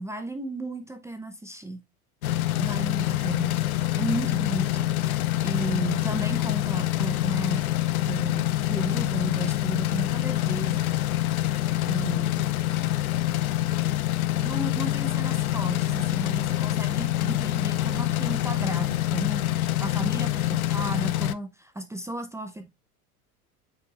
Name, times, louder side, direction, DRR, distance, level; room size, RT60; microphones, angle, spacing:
voice 1, 0.0-1.8 2.6-3.6 4.0-7.6 8.0-11.4 11.8-12.5 14.4-22.7, right 2 dB, 5° right, 0.8 m, -34 dB
sound 1, 2.2-21.3, left 15 dB, 70° left, 0.6 m, -26 dB
8.3 x 5.1 x 2.4 m
figure-of-eight pair, 80°, 45 cm